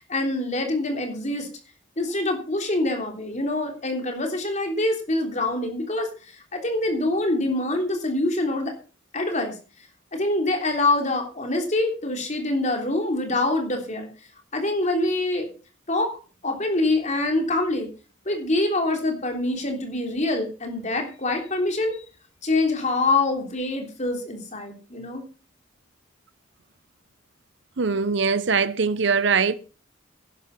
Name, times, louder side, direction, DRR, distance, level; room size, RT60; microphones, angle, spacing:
voice 1, 0.0-1.5 2.0-8.7 9.1-9.6 10.1-14.1 14.5-15.5 15.9-16.2 16.4-17.9 18.3-22.0 22.4-25.2, left 2 dB, 35° left, 3.5 m, -25 dB
voice 2, 27.8-29.5, right 5 dB, 60° right, 0.8 m, -22 dB
11.0 x 11.0 x 5.5 m
head